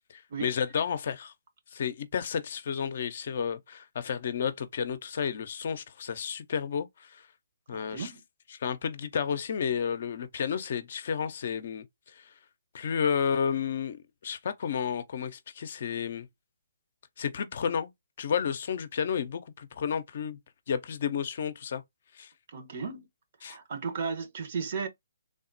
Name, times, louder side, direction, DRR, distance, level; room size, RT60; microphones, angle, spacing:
voice 1, 0.1-1.3 1.7-7.2 7.7-8.1 8.6-11.9 12.2-12.3 12.7-16.3 17.2-17.9 18.2-20.4 20.7-21.8 22.1-22.3 23.4-23.6, left 7 dB, 55° left, 0.5 m, -31 dB
voice 2, 7.7-8.2 22.5-23.1 23.4-24.9, right 5 dB, 50° right, 0.9 m, -35 dB
3.5 x 2.0 x 2.5 m
figure-of-eight pair, 140°, 0 cm